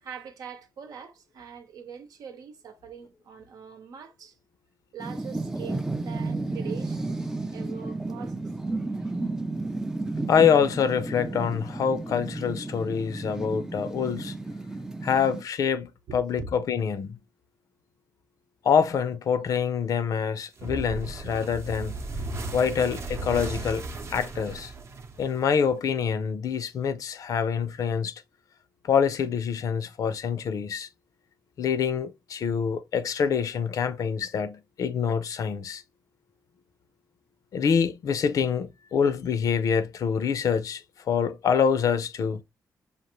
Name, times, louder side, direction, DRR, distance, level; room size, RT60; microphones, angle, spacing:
voice 1, 0.0-4.4 4.9-7.2 7.5-8.4 16.1-16.5, right 7 dB, 75° right, 0.9 m, -42 dB
sound 1, 5.0-15.4, right 2 dB, 10° right, 0.4 m, -32 dB
voice 2, 10.3-14.3 15.0-17.2 18.6-22.0 22.5-23.8 24.1-24.7 25.2-28.1 28.8-30.9 31.6-35.8 37.5-42.4, left 7 dB, 65° left, 0.6 m, -26 dB
sound 2, 20.6-25.7, right 2 dB, 45° right, 0.7 m, -36 dB
5.2 x 2.5 x 3.0 m
cardioid pair, 125°, 6 cm